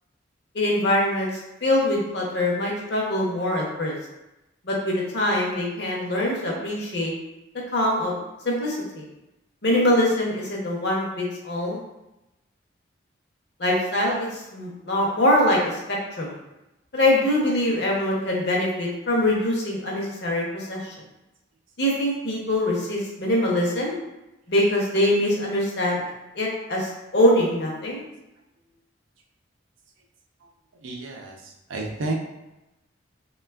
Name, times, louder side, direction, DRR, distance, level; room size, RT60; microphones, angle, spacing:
voice 1, 0.5-3.9 4.6-7.1 7.7-8.1 8.4-9.0 9.6-11.8 13.6-14.3 14.5-15.7 16.2-16.3 16.9-20.8 21.8-23.9 24.5-26.0 26.4-28.0, left 1 dB, 55° left, -2 dB, 0.6 m, -23 dB
voice 2, 30.8-32.1, right 2 dB, 85° right, 0 dB, 0.5 m, -31 dB
3.2 x 2.2 x 2.2 m, 0.96 s
head